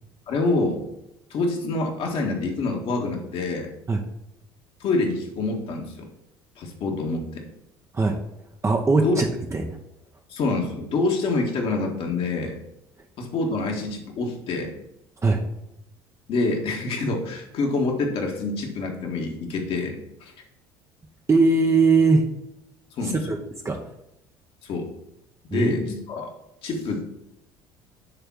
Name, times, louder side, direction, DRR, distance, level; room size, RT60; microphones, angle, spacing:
voice 1, 0.3-0.8 1.3-3.7 4.8-6.1 6.6-7.4 9.0-9.2 10.3-12.5 13.2-14.7 16.3-20.3 23.0-23.2 24.6-24.9 25.5-26.3 26.6-27.0, left 3 dB, 55° left, 1 dB, 1.6 m, -26 dB
voice 2, 8.6-9.8 15.2-15.4 21.3-22.3 23.0-23.4 23.6-23.8 25.5-25.7, right 3 dB, 25° right, 2 dB, 0.9 m, -20 dB
6.8 x 3.5 x 6.0 m, 0.83 s
hypercardioid pair, 65°, 11 cm